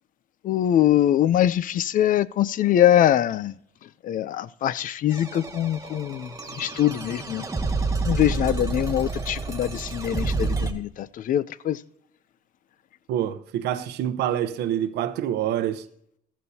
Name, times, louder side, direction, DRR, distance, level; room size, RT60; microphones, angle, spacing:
voice 1, 0.4-3.5 4.0-7.4 8.0-11.8, left 11 dB, 50° left, 0.5 m, -23 dB
sound 1, 5.1-10.7, right 3 dB, 20° right, 1.6 m, -29 dB
voice 2, 13.1-15.8, right 11 dB, 80° right, 0.9 m, -26 dB
14.5 x 13.5 x 2.8 m
cardioid pair, 110°, 17 cm